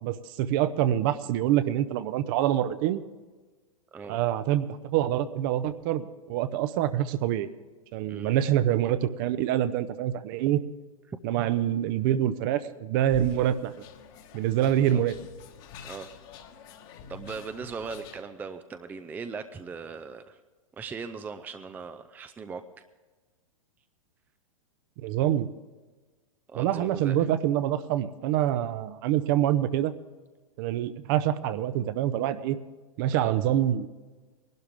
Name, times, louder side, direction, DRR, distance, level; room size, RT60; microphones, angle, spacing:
voice 1, 0.0-3.0 4.1-7.5 7.9-10.6 11.2-13.7 14.3-15.1 25.0-25.5 26.5-29.9 30.6-32.6 33.0-33.9, right 11 dB, 40° right, 13 dB, 0.7 m, -26 dB
sound 1, 13.1-18.2, left 6 dB, 40° left, 1.4 m, -46 dB
voice 2, 17.1-20.4 20.8-22.6 26.5-27.3 33.1-33.3, right 5 dB, 10° right, 9 dB, 0.5 m, -39 dB
21.0 x 12.0 x 3.5 m, 1.3 s
figure-of-eight pair, 105°, 18 cm